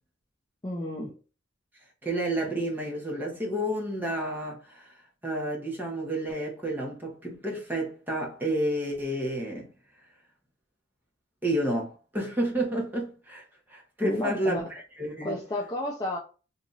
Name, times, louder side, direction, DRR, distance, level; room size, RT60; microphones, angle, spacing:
voice 1, 0.6-1.2 14.0-14.6 15.2-16.2, left 1 dB, 20° left, 0.5 m, -32 dB
voice 2, 2.0-9.7 11.4-13.4 13.7-15.4, right 1 dB, 10° right, 1.0 m, -30 dB
2.9 x 2.5 x 3.9 m
head